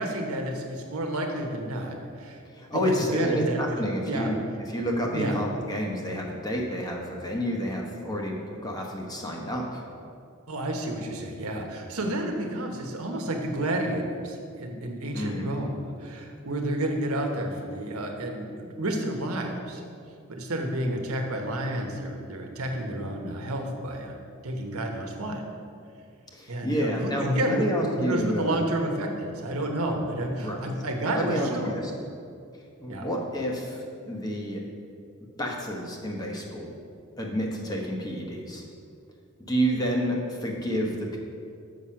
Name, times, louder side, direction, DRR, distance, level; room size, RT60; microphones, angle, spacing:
voice 1, 0.0-2.4 2.7-3.6 4.1-4.4 5.1-5.4 10.5-19.8 20.3-25.4 26.5-31.9 32.9-33.1, right 1 dB, 90° right, 2 dB, 1.1 m, -30 dB
voice 2, 2.5-4.4 4.7-9.8 15.1-15.5 26.3-28.6 30.4-30.6 31.1-31.9 32.8-34.6 35.4-36.7 37.2-38.6 39.5-41.2, equal, 20° left, 0 dB, 1.1 m, -29 dB
6.8 x 6.2 x 5.7 m, 2.4 s
head